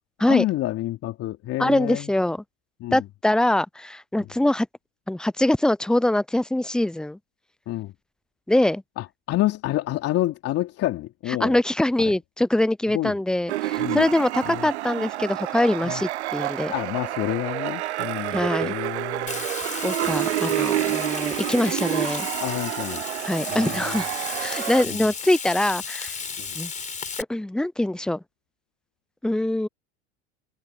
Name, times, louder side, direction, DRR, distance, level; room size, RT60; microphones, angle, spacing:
voice 1, 0.3-2.1 2.8-3.0 7.7-7.9 9.0-11.6 12.0-12.1 12.9-13.1 13.8-14.0 14.5-14.7 15.8-16.0 16.7-19.4 22.4-23.0 23.5-24.0 24.9-25.0 26.4-26.6, left 15 dB, 45° left, 3.0 m, -28 dB
voice 2, 1.6-2.4 2.9-4.7 5.1-7.2 8.5-8.8 11.3-16.7 18.3-18.7 19.8-22.3 23.3-24.1 24.4-26.1 26.6-26.7 27.3-28.2 29.2-29.7, left 1 dB, ahead, 0.5 m, -23 dB
sound 1, 13.5-24.8, right 15 dB, 75° right, 0.9 m, -28 dB
Frying (food), 19.3-27.2, left 5 dB, 20° left, 4.4 m, -34 dB
hypercardioid pair, 85°, 34 cm